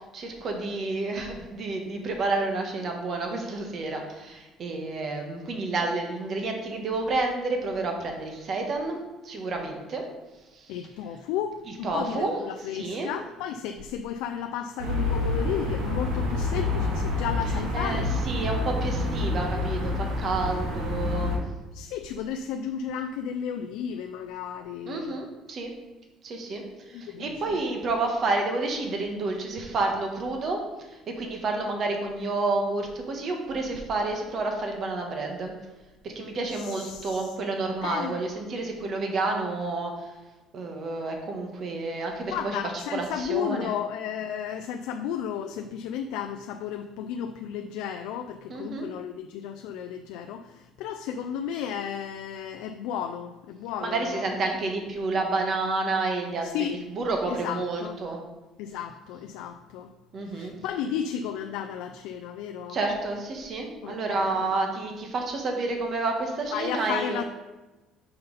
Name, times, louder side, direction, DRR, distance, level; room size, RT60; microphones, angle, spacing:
voice 1, 0.1-9.0 9.2-10.0 10.5-10.7 11.8-12.4 12.7-13.1 17.7-21.4 24.9-25.7 26.2-30.6 30.9-35.5 36.0-40.1 40.5-42.6 42.9-43.7 48.5-48.9 53.8-56.5 56.9-58.2 60.1-60.5 62.7-67.2, right 3 dB, 50° right, 2 dB, 1.3 m, -30 dB
voice 2, 10.7-18.1 21.7-25.2 26.9-27.6 36.5-37.4 37.8-38.2 42.3-54.5 56.4-56.8 57.3-58.0 58.6-59.9 60.3-62.8 63.8-64.5 66.5-67.2, left 8 dB, 85° left, 6 dB, 0.3 m, -33 dB
sound 1, 14.8-21.4, left 2 dB, 85° right, 1.5 m, -28 dB
5.5 x 5.4 x 4.0 m, 1.1 s
cardioid pair, 105°, 0 cm